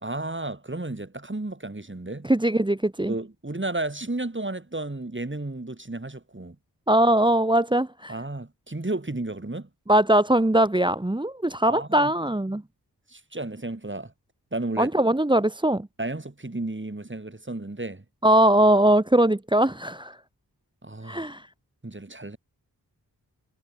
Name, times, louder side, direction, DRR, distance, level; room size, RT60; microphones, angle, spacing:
voice 1, 0.0-2.3 3.1-6.6 8.1-9.7 11.7-12.1 13.1-14.1 14.5-14.9 16.0-18.0 20.8-21.3 21.8-22.4, right 2 dB, 30° right, 5.6 m, -33 dB
voice 2, 2.2-3.1 6.9-8.1 9.9-12.6 14.8-15.9 18.2-20.2 21.0-21.5, right 1 dB, 10° right, 1.1 m, -21 dB
wide cardioid pair, 75°, 40 cm